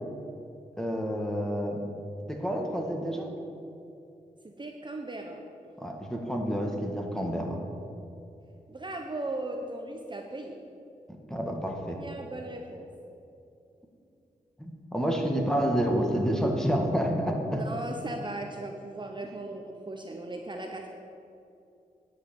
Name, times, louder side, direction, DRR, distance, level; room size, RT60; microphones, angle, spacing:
voice 1, 0.8-1.8 2.3-3.3 5.8-7.6 11.3-12.0 14.6-17.6, equal, 5° left, 1 dB, 2.0 m, -29 dB
voice 2, 4.4-5.4 8.7-10.6 11.9-12.9 17.5-20.9, right 2 dB, 35° right, 2 dB, 1.0 m, -37 dB
10.0 x 5.9 x 8.3 m, 2.7 s
cardioid pair, 55°, 14 cm